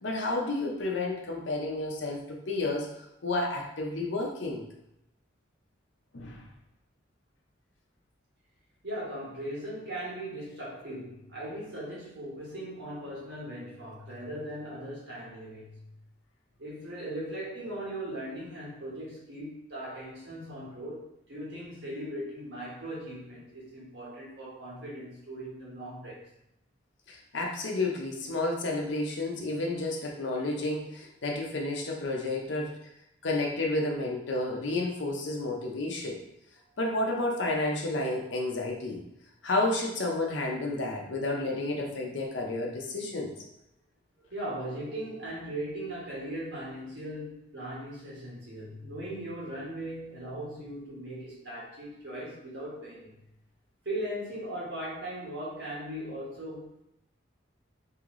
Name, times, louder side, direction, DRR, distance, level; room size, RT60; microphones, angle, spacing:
voice 1, 0.0-2.9 3.2-4.7 6.1-6.4 27.1-32.7 33.2-36.2 36.8-39.0 39.4-43.3, left 2 dB, 70° left, 0 dB, 0.7 m, -31 dB
voice 2, 8.8-15.9 16.6-26.3 43.3-43.4 44.3-53.2 53.8-56.8, right 1 dB, 60° right, -6 dB, 1.5 m, -39 dB
3.1 x 2.8 x 3.7 m, 0.82 s
head